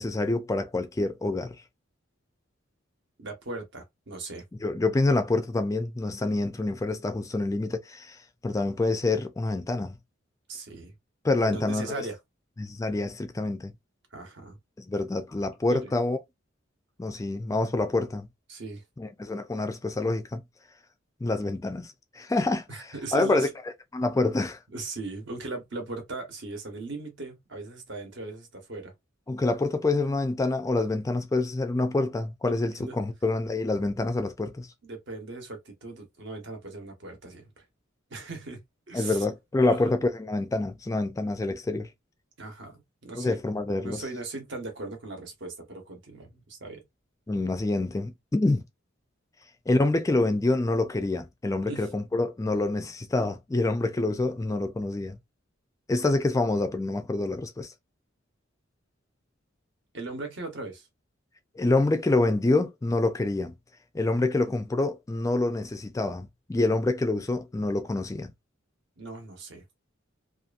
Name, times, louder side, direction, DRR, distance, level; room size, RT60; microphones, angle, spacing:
voice 1, 0.0-1.5 4.6-10.0 11.2-12.1 12.6-13.7 14.8-16.2 17.0-18.3 19.0-20.4 21.2-23.5 23.9-24.6 29.3-34.7 38.9-41.9 43.2-44.0 47.3-48.6 49.7-55.2 55.9-57.7 61.6-63.5 63.9-68.3, left 2 dB, 15° left, 0.3 m, -27 dB
voice 2, 3.2-4.4 10.5-10.9 11.4-12.2 14.1-14.6 15.7-15.9 18.5-18.8 22.7-23.5 24.7-28.9 32.4-33.0 34.8-37.6 38.1-39.2 39.6-39.9 42.4-43.4 43.8-46.8 51.7-51.9 59.9-60.9 69.0-69.6, right 3 dB, 65° right, 1.0 m, -38 dB
2.7 x 2.5 x 2.4 m
head